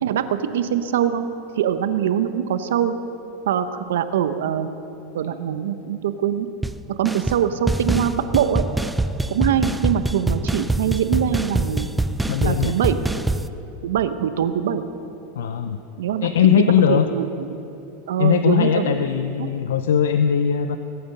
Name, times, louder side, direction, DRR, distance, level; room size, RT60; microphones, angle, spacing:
voice 1, 0.0-1.3 1.6-2.9 3.5-4.7 5.1-6.5 7.0-8.6 9.3-11.9 12.4-13.0 13.8-14.8 16.0-16.3 16.6-17.3 18.1-19.0 19.4-19.5, right 9 dB, 85° right, 10 dB, 0.9 m, -23 dB
sound 1, 6.6-6.8 7.0-7.4 7.7-13.5, right 2 dB, 5° right, 0.4 m, -24 dB
voice 2, 12.2-12.7 15.3-15.8 16.2-17.1 18.2-20.8, left 8 dB, 90° left, 8 dB, 0.5 m, -19 dB
20.5 x 8.8 x 5.5 m, 3.0 s
supercardioid pair, 125°, 0 cm